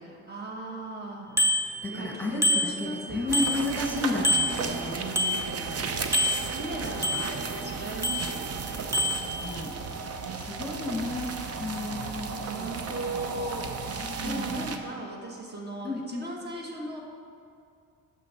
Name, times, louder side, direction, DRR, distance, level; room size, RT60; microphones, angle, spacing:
voice 1, 0.0-1.4 1.7-3.6 4.9-8.9 10.2-10.8 12.4-13.7 14.2-17.0, right 2 dB, 35° right, -1 dB, 1.3 m, -38 dB
Bicycle bell, 1.4-2.1 2.4-3.9 4.2-5.8 6.1-7.6 8.0-8.6 8.9-9.3, left 1 dB, 10° right, 0.8 m, -28 dB
voice 2, 1.8-5.0 5.6-5.9 6.8-7.5 9.4-9.7 10.4-12.8 14.0-14.7 15.8-16.2, left 2 dB, 5° left, -2 dB, 1.3 m, -33 dB
sound 1, 3.3-14.8, right 4 dB, 55° right, 0.8 m, -34 dB
7.4 x 6.4 x 5.6 m, 2.4 s
cardioid pair, 90°, 30 cm